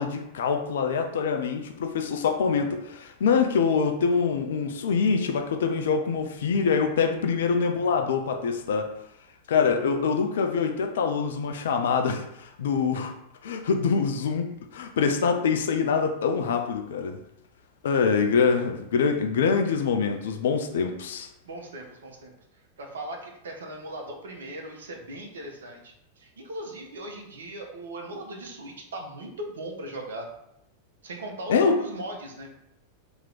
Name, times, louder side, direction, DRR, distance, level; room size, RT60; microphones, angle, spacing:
voice 1, 0.0-8.9 9.5-13.1 13.4-17.2 17.8-21.3 31.5-31.8, left 5 dB, 60° left, 5 dB, 0.4 m, -25 dB
voice 2, 21.4-22.3 22.8-30.3 31.0-32.5, right 1 dB, 65° right, 1 dB, 0.8 m, -38 dB
3.0 x 3.0 x 3.8 m, 0.79 s
figure-of-eight pair, 90°, 0 cm